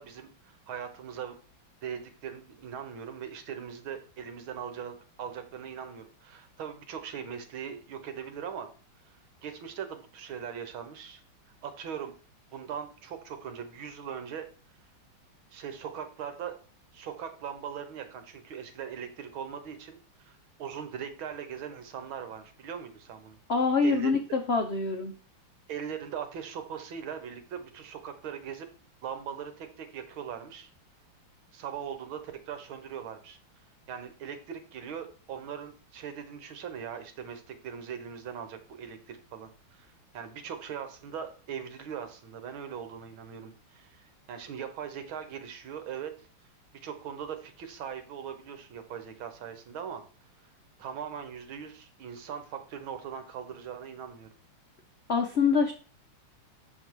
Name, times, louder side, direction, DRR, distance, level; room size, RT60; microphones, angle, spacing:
voice 1, 0.0-1.4 1.8-8.7 9.1-11.2 11.6-12.1 12.5-14.5 15.5-16.6 16.9-23.4 23.8-24.1 25.7-28.7 29.0-30.7 31.5-33.4 33.9-46.1 46.8-50.0 50.8-54.3, right 8 dB, 75° right, 8 dB, 1.9 m, -40 dB
voice 2, 23.5-25.1 55.1-55.7, left 4 dB, 90° left, 5 dB, 0.5 m, -25 dB
6.9 x 6.3 x 4.6 m, 0.39 s
omnidirectional pair, 2.3 m